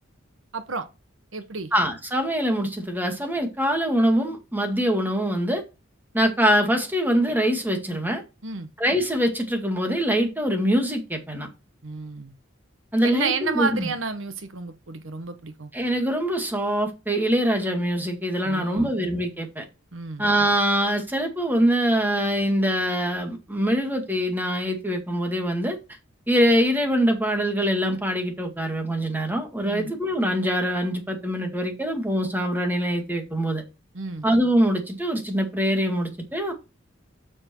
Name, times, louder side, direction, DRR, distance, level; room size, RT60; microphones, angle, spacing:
voice 1, 0.5-0.9 1.3-1.7 8.4-8.7 11.8-12.3 13.0-15.7 18.4-19.0 19.9-20.2 29.6-29.9 33.9-34.3, right 4 dB, 75° right, 1.1 m, -31 dB
voice 2, 1.7-5.6 6.1-8.2 8.8-11.5 12.9-13.9 15.7-19.6 20.2-25.8 26.3-33.6 34.2-36.5, equal, 10° right, 2.0 m, -23 dB
7.7 x 6.1 x 4.4 m
head